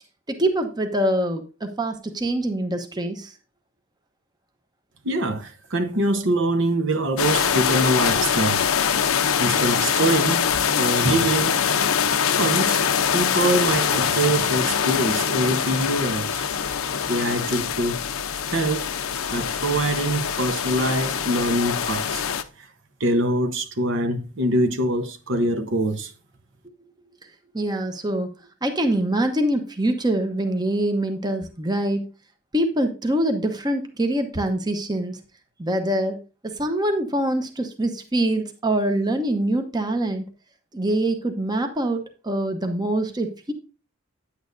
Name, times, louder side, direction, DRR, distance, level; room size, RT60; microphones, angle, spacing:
voice 1, 0.3-3.3 27.5-28.3 28.6-32.0 32.5-35.2 35.6-40.3 40.7-43.5, right 1 dB, 20° right, 0.9 m, -24 dB
voice 2, 5.0-8.7 9.4-10.5 10.8-11.6 12.3-12.8 13.1-16.4 17.1-18.0 18.5-18.9 19.3-22.2 22.6-22.7 23.0-26.1, right 1 dB, 60° right, 1.0 m, -24 dB
sound 1, 7.2-22.4, left 7 dB, 80° left, 0.7 m, -23 dB
9.5 x 8.6 x 2.6 m
head